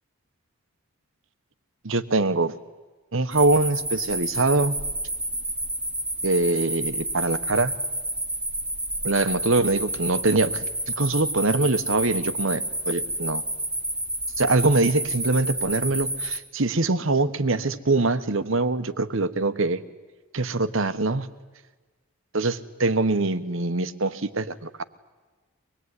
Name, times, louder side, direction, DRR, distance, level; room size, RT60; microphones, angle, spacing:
voice 1, 1.8-2.5 3.1-4.7 6.2-7.7 9.0-13.4 14.4-19.8 20.3-21.3 22.3-24.8, right 3 dB, 60° right, 12 dB, 1.2 m, -23 dB
sound 1, 3.3-16.4, right 1 dB, 5° right, 1.5 m, -30 dB
24.5 x 20.0 x 9.7 m, 1.3 s
head